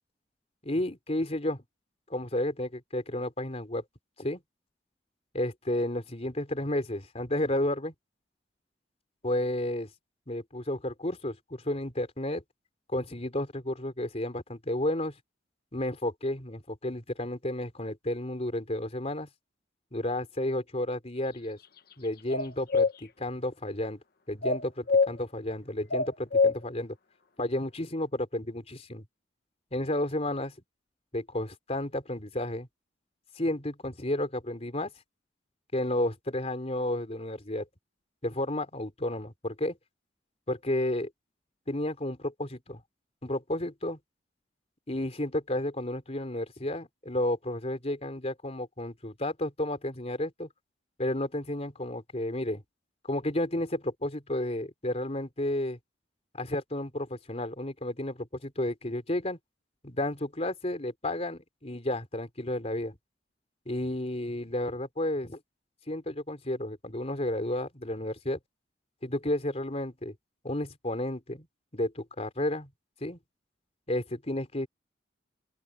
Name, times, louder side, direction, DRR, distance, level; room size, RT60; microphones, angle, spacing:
voice 1, 0.6-1.6 2.1-3.8 4.2-4.4 5.3-7.9 9.2-9.9 10.3-12.4 12.9-15.1 15.7-19.3 19.9-21.6 22.0-24.0 24.3-27.0 27.4-29.0 29.7-30.5 31.1-32.7 33.4-34.9 35.7-37.7 38.2-39.8 40.5-41.1 41.7-42.8 43.2-44.0 44.9-50.5 51.0-52.6 53.0-55.8 56.4-59.4 59.8-63.0 63.7-65.4 65.9-68.4 69.0-70.1 70.4-71.5 71.7-72.7 73.0-73.2 73.9-74.7, left 1 dB, 35° left, 3.7 m, -32 dB
sound 1, 22.3-22.9 24.4-25.1 25.9-26.6, left 4 dB, 55° left, 1.4 m, -23 dB
open air
head